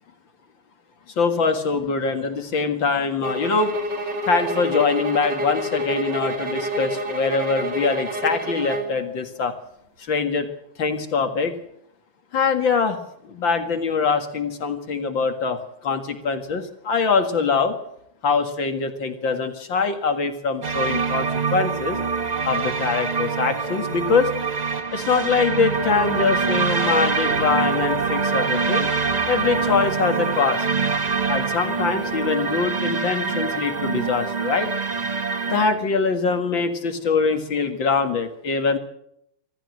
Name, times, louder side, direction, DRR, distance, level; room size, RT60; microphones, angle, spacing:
voice 1, 1.2-3.7 4.3-9.5 10.0-10.5 10.8-11.6 12.3-13.0 13.2-15.6 15.8-17.7 18.2-22.0 22.4-24.3 24.9-28.9 29.3-30.7 31.3-34.7 35.5-38.8, left 5 dB, 60° left, 7 dB, 2.6 m, -23 dB
sound 1, 3.2-9.0, equal, 55° right, 3.2 m, -28 dB
sound 2, 20.6-35.7, right 5 dB, 30° right, 0.8 m, -24 dB
25.5 x 14.5 x 7.8 m, 0.74 s
omnidirectional pair, 2.4 m